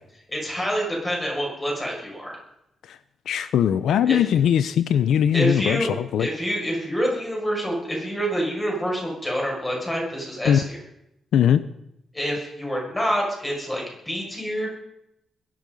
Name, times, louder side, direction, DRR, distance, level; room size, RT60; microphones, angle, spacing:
voice 1, 0.3-2.4 4.1-4.2 5.3-5.9 6.2-10.8 12.1-14.7, equal, 15° left, -2 dB, 6.3 m, -27 dB
voice 2, 3.3-6.3 10.4-10.6 11.3-11.6, left 9 dB, 85° left, 13 dB, 0.7 m, -20 dB
22.0 x 11.5 x 5.4 m, 0.82 s
wide cardioid pair, 140°, 0 cm